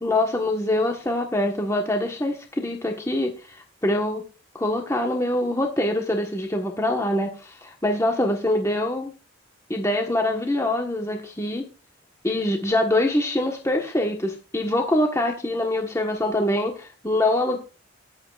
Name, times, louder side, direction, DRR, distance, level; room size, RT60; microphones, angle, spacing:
voice 1, 0.0-4.2 4.5-9.1 9.7-11.6 12.2-17.6, left 1 dB, 15° left, 2 dB, 1.3 m, -24 dB
23.0 x 8.0 x 2.5 m, 0.33 s
head